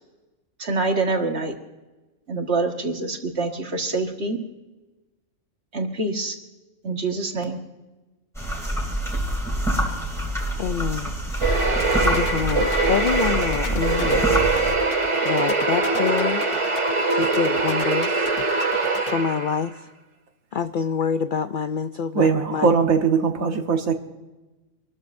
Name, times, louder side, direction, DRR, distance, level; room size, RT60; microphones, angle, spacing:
voice 1, 0.6-1.5 2.3-4.4 5.7-6.3 6.8-7.6, right 3 dB, 50° right, 3 dB, 1.9 m, -25 dB
sound 1, 8.3-14.7, equal, ahead, 2.7 m, -26 dB
voice 2, 10.6-11.1 12.0-14.4 15.2-16.4 17.1-18.3 19.1-19.9 20.5-22.7, left 6 dB, 65° left, 10 dB, 0.5 m, -26 dB
sound 2, 11.4-19.7, right 3 dB, 25° right, 1.2 m, -23 dB
sound 3, 11.8-19.1, left 8 dB, 85° left, 1.3 m, -36 dB
voice 3, 22.1-23.9, right 5 dB, 75° right, 4 dB, 1.7 m, -20 dB
26.5 x 13.0 x 2.6 m, 1.1 s
omnidirectional pair, 1.4 m